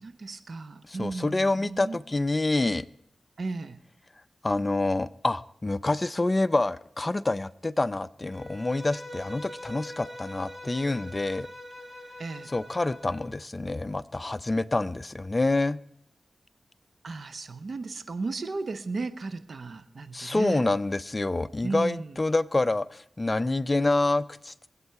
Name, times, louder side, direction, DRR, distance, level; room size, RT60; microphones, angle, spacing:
voice 1, 0.0-2.0 3.4-3.8 12.2-12.5 17.0-20.7 21.6-22.2, right 3 dB, 70° right, 12 dB, 0.9 m, -35 dB
voice 2, 0.9-2.9 4.4-11.5 12.5-15.8 20.1-24.7, left 2 dB, 35° left, 16 dB, 0.5 m, -27 dB
Bowed string instrument, 8.3-13.3, left 1 dB, 10° right, 2.6 m, -43 dB
23.5 x 8.2 x 4.7 m, 0.72 s
cardioid pair, 45°, 0 cm